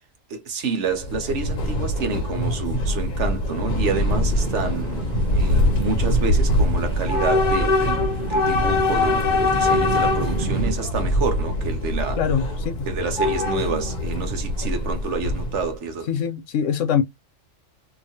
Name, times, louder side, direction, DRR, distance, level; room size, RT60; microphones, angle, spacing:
voice 1, 0.3-5.0 5.3-12.2 12.9-16.1, right 4 dB, 65° right, 1.1 m, -28 dB
Train / Subway metro underground, 0.9-15.8, left 1 dB, 45° left, 0.7 m, -23 dB
sound 1, 3.8-10.7, right 4 dB, 50° right, 0.8 m, -32 dB
voice 2, 12.2-12.9 16.1-17.0, left 8 dB, 75° left, 1.0 m, -23 dB
2.9 x 2.4 x 2.6 m
omnidirectional pair, 1.3 m